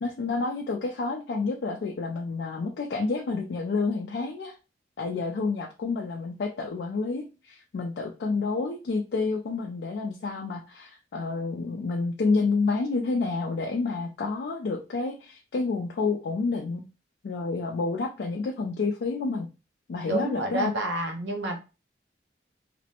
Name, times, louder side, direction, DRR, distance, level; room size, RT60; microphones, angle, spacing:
voice 1, 0.0-4.6 5.0-16.9 17.2-19.5 19.9-20.7, left 4 dB, 65° left, 2 dB, 0.3 m, -29 dB
voice 2, 20.1-21.6, right 2 dB, 85° right, 2 dB, 0.6 m, -29 dB
2.4 x 2.0 x 2.8 m, 0.31 s
head